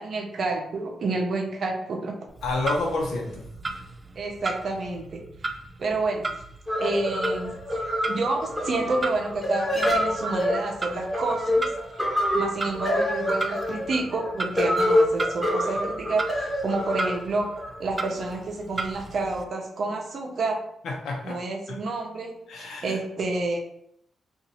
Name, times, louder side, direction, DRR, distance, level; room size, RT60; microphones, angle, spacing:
voice 1, 0.0-2.2 4.1-5.3 5.8-6.3 6.8-7.5 8.1-11.7 12.3-17.5 17.8-20.6 21.2-23.6, right 3 dB, 55° right, 1 dB, 0.7 m, -29 dB
Clock, 2.3-19.4, right 2 dB, 25° right, 0.3 m, -36 dB
voice 2, 2.4-3.5 21.0-21.4 22.5-23.0, left 2 dB, 85° left, 0 dB, 0.8 m, -28 dB
sound 1, 6.7-18.3, left 1 dB, 10° left, 1.1 m, -26 dB
2.7 x 2.5 x 4.1 m, 0.72 s
cardioid pair, 100°, 0 cm